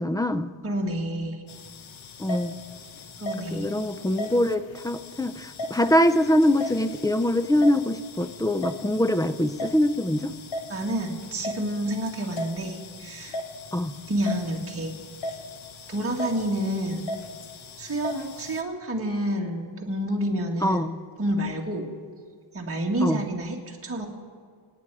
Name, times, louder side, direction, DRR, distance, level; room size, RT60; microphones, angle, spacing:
voice 1, 0.0-0.5 2.2-2.6 3.5-10.3 13.7-13.9 20.6-20.9 23.0-23.2, left 1 dB, 10° left, 12 dB, 0.4 m, -23 dB
voice 2, 0.6-1.4 3.2-3.7 10.7-13.4 14.1-15.0 15.9-17.1 17.8-20.9 21.2-21.9 22.5-24.1, right 1 dB, 30° right, -1 dB, 1.9 m, -29 dB
sound 1, 1.5-18.6, left 1 dB, 70° left, 1.2 m, -38 dB
25.5 x 9.1 x 4.8 m, 2.1 s
wide cardioid pair, 135°, 48 cm